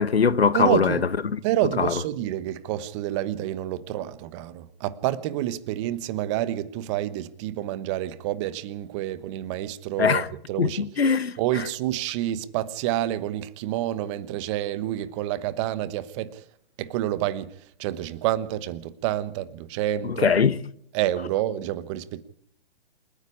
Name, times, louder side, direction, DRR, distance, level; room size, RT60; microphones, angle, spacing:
voice 1, 0.0-1.4 1.8-1.9 10.0-10.3 10.6-11.7 20.0-20.6, left 6 dB, 85° left, 1.2 m, -22 dB
voice 2, 0.5-1.0 1.4-10.8 11.4-16.4 16.8-17.5 17.8-20.3 20.9-22.2, right 13 dB, 30° right, 1.1 m, -28 dB
27.5 x 9.8 x 9.7 m
hypercardioid pair, 130°, 30 cm